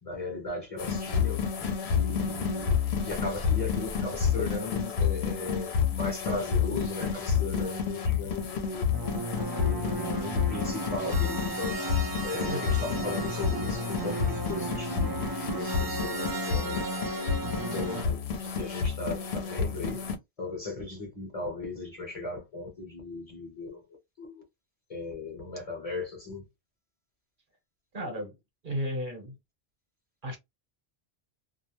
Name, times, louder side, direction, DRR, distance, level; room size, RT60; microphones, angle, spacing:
voice 1, 0.0-1.4 1.9-8.9 9.5-11.8 12.2-16.9 17.7-20.0 20.4-23.8 24.2-24.4 24.9-26.5, left 3 dB, 35° left, 0.9 m, -37 dB
sound 1, 0.8-20.2, left 7 dB, 80° left, 0.9 m, -30 dB
sound 2, 8.9-18.0, right 2 dB, 35° right, 0.3 m, -34 dB
voice 2, 12.5-12.8 27.9-28.3 28.6-29.4 30.2-30.4, equal, 55° right, 1.1 m, -34 dB
2.4 x 2.1 x 3.0 m
omnidirectional pair, 1.1 m